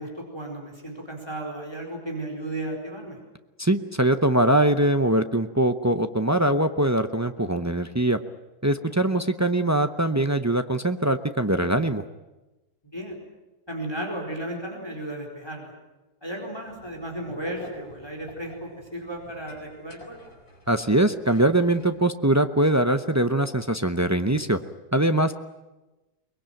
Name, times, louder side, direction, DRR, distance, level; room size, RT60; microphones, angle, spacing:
voice 1, 0.0-3.2 9.1-9.3 12.9-13.2 13.7-15.7 16.2-20.2 25.2-25.3, right 1 dB, 15° left, 2 dB, 4.3 m, -34 dB
voice 2, 3.6-8.2 8.6-12.0 20.7-24.6 24.9-25.3, right 1 dB, 25° right, 9 dB, 0.3 m, -22 dB
sound 1, 16.6-22.0, equal, 65° left, 5.2 m, -48 dB
23.0 x 21.0 x 9.0 m, 1.1 s
omnidirectional pair, 1.7 m